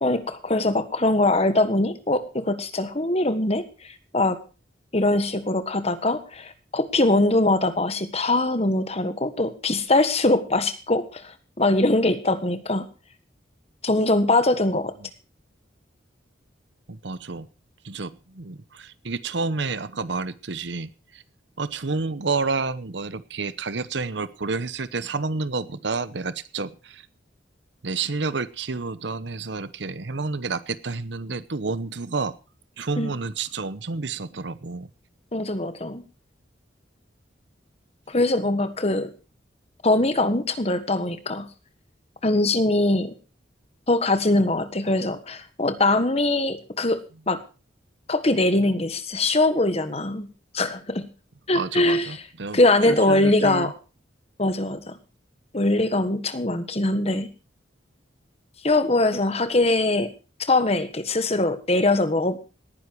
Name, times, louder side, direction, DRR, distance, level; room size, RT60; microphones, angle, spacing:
voice 1, 0.0-4.4 4.9-12.9 13.8-14.9 33.0-33.1 35.3-36.0 38.1-39.1 39.8-41.5 42.2-43.1 43.9-47.4 48.1-50.3 50.5-51.1 51.5-52.1 52.5-53.7 54.4-54.9 55.5-57.3 58.6-60.1 60.5-62.4, left 2 dB, 35° left, 11 dB, 1.4 m, -22 dB
voice 2, 16.9-17.5 17.8-21.2 21.6-27.0 27.8-32.3 32.8-34.9 51.5-52.6 52.9-53.7, right 4 dB, 65° right, 15 dB, 0.9 m, -30 dB
18.5 x 10.0 x 4.6 m, 0.34 s
head